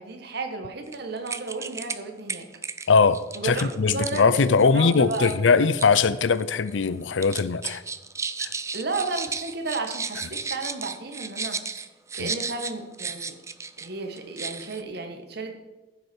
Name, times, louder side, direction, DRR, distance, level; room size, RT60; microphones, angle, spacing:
voice 1, 0.0-2.5 3.3-5.7 8.7-11.6 12.1-13.4 13.8-15.6, right 3 dB, 60° right, 1.5 m, -33 dB
sound 1, 0.9-1.0 1.3-2.0 2.3-6.0 6.3-6.8 7.2-13.9 14.2-14.8, right 5 dB, 15° right, 0.4 m, -34 dB
voice 2, 2.9-7.8 8.4-8.5 12.2-12.3, left 5 dB, 85° left, 0.5 m, -21 dB
15.0 x 8.0 x 4.5 m
head